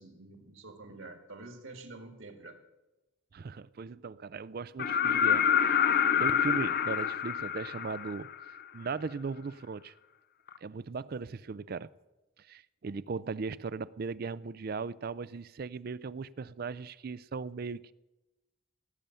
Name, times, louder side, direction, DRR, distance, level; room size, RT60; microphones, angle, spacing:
voice 1, 0.0-2.6, right 2 dB, 65° right, 2.0 m, -48 dB
voice 2, 3.3-5.9 6.2-8.3 8.7-9.9 10.6-11.9 12.4-17.9, right 4 dB, 45° right, 0.4 m, -38 dB
sound 1, 4.8-8.6 10.5-10.6, left 8 dB, 40° left, 0.4 m, -27 dB
17.5 x 6.9 x 9.0 m
head